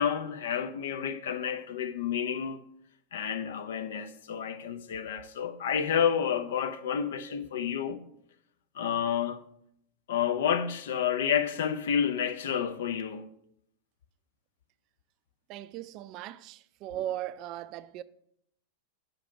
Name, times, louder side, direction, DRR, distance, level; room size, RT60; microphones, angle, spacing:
voice 1, 0.0-2.6 3.1-8.0 8.8-9.4 10.1-13.3, left 8 dB, 60° left, 0.6 m, -30 dB
voice 2, 15.5-18.0, right 12 dB, 40° right, 0.3 m, -38 dB
7.4 x 5.2 x 5.8 m
figure-of-eight pair, 90°, 0 cm